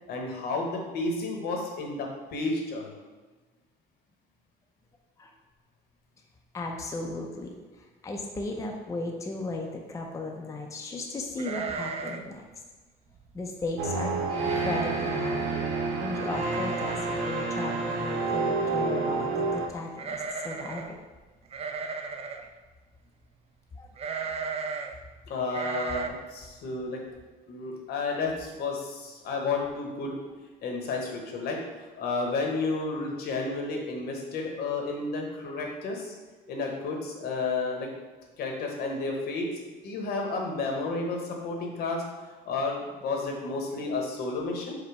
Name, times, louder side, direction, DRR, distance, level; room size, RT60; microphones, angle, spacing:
voice 1, 0.1-3.0 25.3-27.0 27.5-30.2 30.6-31.6 32.0-36.1 36.4-37.9 38.4-42.0 42.5-44.8, left 3 dB, 70° left, 1 dB, 1.0 m, -31 dB
voice 2, 6.5-7.5 8.0-12.4 13.3-15.4 16.0-21.0 22.3-22.4 23.8-23.9, left 2 dB, 20° left, 0 dB, 0.5 m, -36 dB
sound 1, 11.4-12.3 12.6-12.7 13.2-13.4 14.0-14.1 14.4-14.9 15.2-15.3 16.4-16.5 16.8-17.3 19.9-20.9 21.5-22.5 24.0-24.9 25.5-26.1, right 5 dB, 35° right, 0.4 m, -35 dB
sound 2, 13.8-19.7, right 3 dB, 85° right, 0.7 m, -29 dB
4.9 x 2.2 x 4.6 m, 1.3 s
cardioid pair, 110°, 17 cm